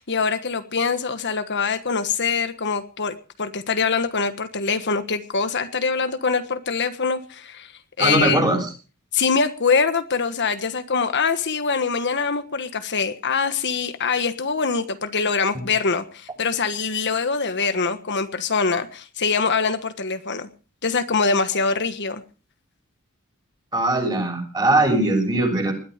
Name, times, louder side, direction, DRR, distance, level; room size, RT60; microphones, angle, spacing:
voice 1, 0.0-7.7 8.0-8.5 9.1-20.5 20.8-22.2, left 5 dB, 55° left, 9 dB, 1.4 m, -24 dB
voice 2, 8.0-8.7 15.5-15.6 23.7-25.7, right 2 dB, 20° right, 3 dB, 7.2 m, -20 dB
20.5 x 13.5 x 5.1 m, 0.38 s
head